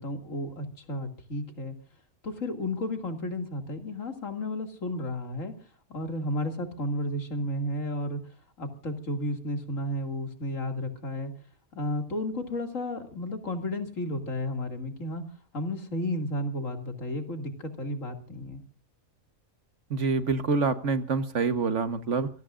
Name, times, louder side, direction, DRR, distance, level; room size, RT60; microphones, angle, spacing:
voice 1, 0.0-1.7 2.2-5.6 5.9-8.2 8.6-11.3 11.7-15.3 15.5-18.6, left 1 dB, 65° left, 5 dB, 2.9 m, -32 dB
voice 2, 19.9-22.3, right 4 dB, 60° right, 10 dB, 1.6 m, -26 dB
27.5 x 18.0 x 2.5 m, 0.37 s
omnidirectional pair, 1.4 m